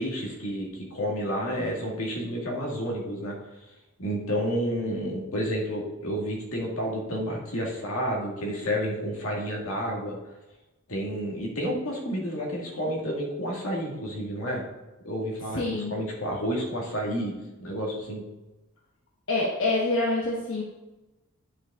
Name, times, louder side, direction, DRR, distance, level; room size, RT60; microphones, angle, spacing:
voice 1, 0.0-3.4 4.0-10.2 10.9-14.6 15.0-17.3 17.6-18.2, equal, 80° left, -2 dB, 2.0 m, -30 dB
voice 2, 15.5-15.9 19.3-20.6, left 2 dB, 60° left, -4 dB, 1.1 m, -26 dB
9.6 x 5.0 x 3.7 m, 1.1 s
head